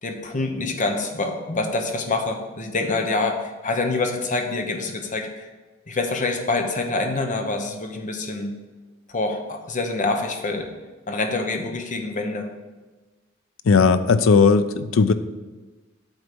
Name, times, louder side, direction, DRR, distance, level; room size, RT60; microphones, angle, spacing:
voice 1, 0.0-5.5 5.9-8.5 9.1-10.7 11.1-12.5, left 3 dB, 40° left, 4 dB, 0.9 m, -26 dB
voice 2, 13.6-15.1, left 5 dB, 80° left, 13 dB, 0.5 m, -17 dB
8.1 x 4.0 x 6.7 m, 1.2 s
head